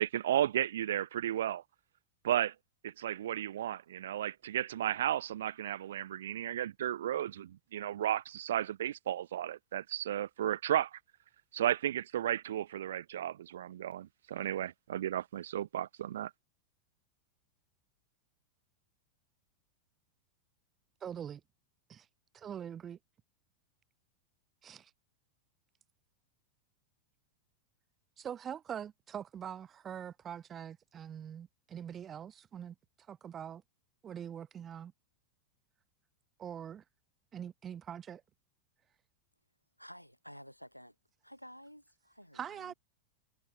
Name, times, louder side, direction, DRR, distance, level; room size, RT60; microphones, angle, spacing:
voice 1, 0.0-1.6 2.2-2.5 2.8-11.0 11.5-16.3, right 11 dB, 60° right, 1.0 m, -34 dB
voice 2, 21.0-21.4 21.9-22.1 22.3-23.0 24.6-24.9 28.2-32.8 33.1-33.6 34.0-34.9 36.4-36.8 37.3-38.2 42.3-42.7, right 9 dB, 25° right, 2.0 m, -43 dB
voice 3, 39.8-40.9 41.2-42.7, equal, 90° left, 4.5 m, -52 dB
figure-of-eight pair, 90°, 0 cm